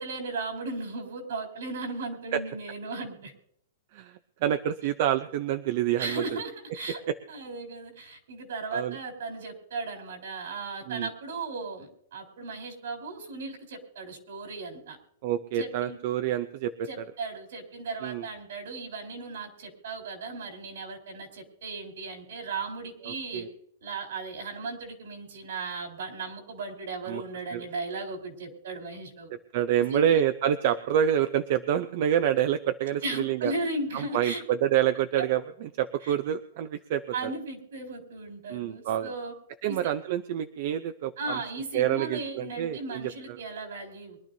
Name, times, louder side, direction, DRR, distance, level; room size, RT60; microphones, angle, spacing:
voice 1, 0.0-3.3 6.0-7.0 7.3-15.0 15.5-16.0 16.9-23.5 23.8-29.3 29.8-30.2 33.0-34.4 36.0-36.1 37.1-39.3 39.7-39.8 41.2-44.2, right 3 dB, 65° right, 2 dB, 3.8 m, -36 dB
voice 2, 3.9-6.2 8.7-9.0 10.9-11.1 15.2-16.9 18.0-18.2 23.1-23.5 27.1-27.2 27.5-27.6 29.5-33.5 33.9-37.3 38.5-39.1 39.6-41.4 41.7-43.4, right 10 dB, 35° right, 11 dB, 0.5 m, -27 dB
23.5 x 12.0 x 2.7 m, 0.68 s
hypercardioid pair, 175°, 0 cm